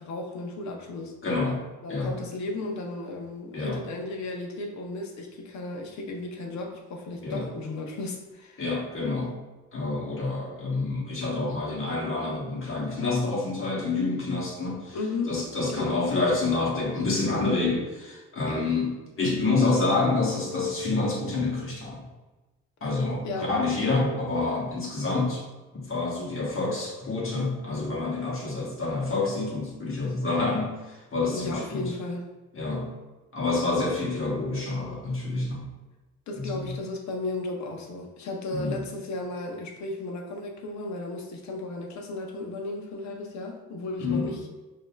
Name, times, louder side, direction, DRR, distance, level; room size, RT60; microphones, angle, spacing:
voice 1, 0.0-1.1 1.8-8.6 14.9-15.3 15.7-16.1 18.4-18.7 23.2-23.5 31.3-32.3 36.3-44.4, left 2 dB, 70° left, 2 dB, 0.8 m, -34 dB
voice 2, 1.2-1.6 1.9-2.1 3.5-3.8 7.2-7.4 8.6-9.4 9.7-15.0 15.3-22.0 22.8-25.4 25.7-31.9 32.5-32.9 33.3-35.7 36.3-36.7 38.5-38.8 44.0-44.3, left 3 dB, 45° left, -3 dB, 1.4 m, -28 dB
5.3 x 2.8 x 2.3 m, 1.1 s
cardioid pair, 90°, 30 cm